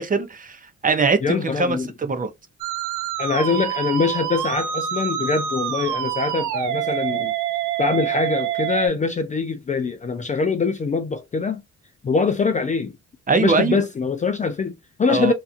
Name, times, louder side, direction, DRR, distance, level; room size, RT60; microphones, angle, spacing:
voice 1, 0.0-2.3 13.3-13.8 15.1-15.3, right 4 dB, 30° right, 0.6 m, -22 dB
voice 2, 1.2-1.9 3.2-7.3 7.8-11.6 12.0-13.0 13.4-15.3, left 4 dB, 25° left, 0.4 m, -23 dB
Musical instrument, 2.6-8.9, right 10 dB, 85° right, 0.6 m, -26 dB
2.8 x 2.3 x 2.4 m
cardioid pair, 90°, 30 cm